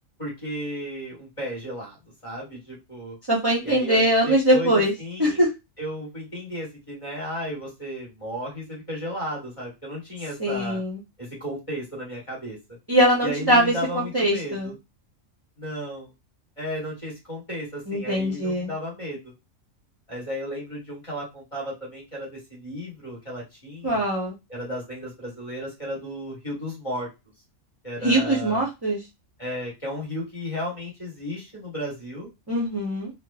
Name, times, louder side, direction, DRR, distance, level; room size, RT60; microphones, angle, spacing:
voice 1, 0.2-2.0 2.2-3.2 3.6-5.4 5.8-10.8 11.2-12.6 13.2-14.7 15.6-16.1 16.6-19.3 20.1-24.0 24.5-27.1 27.8-28.6 29.4-32.3, equal, 25° left, -4 dB, 1.3 m, -34 dB
voice 2, 3.3-4.9 5.2-5.5 10.4-11.0 12.9-14.7 17.9-18.7 23.8-24.3 28.0-29.0 32.5-33.1, right 1 dB, 30° right, -4 dB, 0.4 m, -22 dB
3.0 x 2.1 x 2.2 m, 0.24 s
omnidirectional pair, 1.4 m